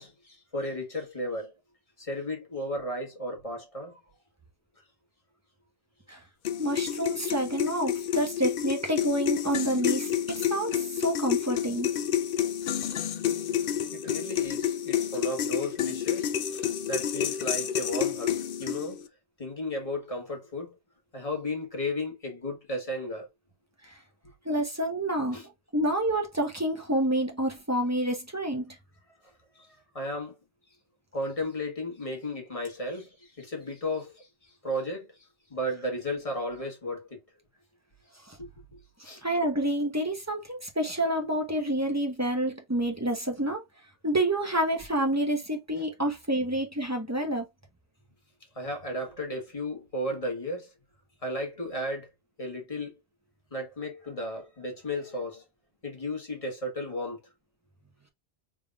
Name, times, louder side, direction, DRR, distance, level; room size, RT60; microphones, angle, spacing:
voice 1, 0.0-1.5 2.0-4.0 13.9-19.0 19.4-20.8 21.1-23.3 25.3-25.5 29.2-30.4 31.1-37.2 38.4-39.2 48.5-50.7 51.2-52.1 52.4-53.0 53.5-55.4 55.8-57.2, left 1 dB, 30° left, 1.4 m, -34 dB
sound 1, 6.4-19.1, left 9 dB, 60° left, 0.7 m, -29 dB
voice 2, 6.6-11.9 24.4-28.8 38.3-38.4 39.2-43.6 44.0-47.5, right 1 dB, 15° right, 1.0 m, -28 dB
3.7 x 3.4 x 2.3 m
omnidirectional pair, 1.1 m